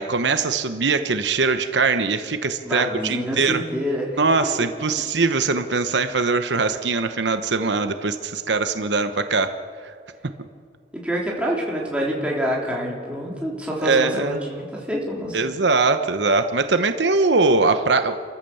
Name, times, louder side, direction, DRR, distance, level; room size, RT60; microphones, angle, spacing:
voice 1, 0.0-3.6 4.2-9.5 9.8-9.9 13.8-14.4 15.3-18.2, right 4 dB, 80° right, 9 dB, 0.9 m, -21 dB
voice 2, 2.6-4.2 11.0-15.4, equal, 5° right, -4 dB, 3.7 m, -26 dB
28.5 x 14.5 x 7.1 m, 2.1 s
head